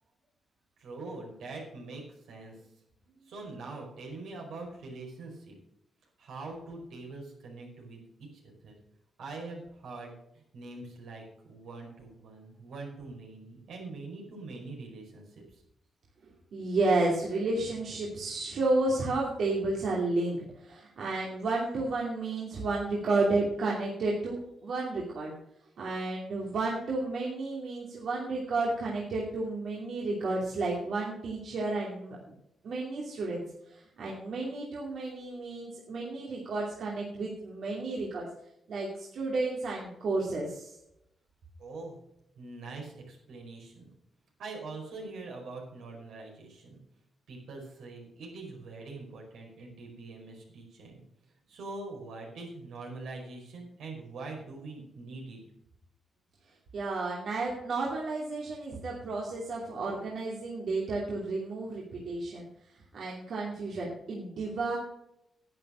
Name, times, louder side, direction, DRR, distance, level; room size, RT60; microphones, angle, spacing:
voice 1, 0.8-2.5 3.3-5.5 6.2-8.7 9.2-11.2 11.5-15.4 41.6-42.0 42.4-43.9 44.4-46.8 47.3-51.0 51.5-55.4, right 3 dB, 85° right, 0 dB, 4.9 m, -43 dB
voice 2, 16.5-25.4 25.8-32.2 32.6-38.3 38.7-40.7 56.7-64.8, right 2 dB, 65° right, -3 dB, 2.7 m, -32 dB
11.0 x 9.3 x 6.2 m, 0.80 s
cardioid pair, 110°, 0 cm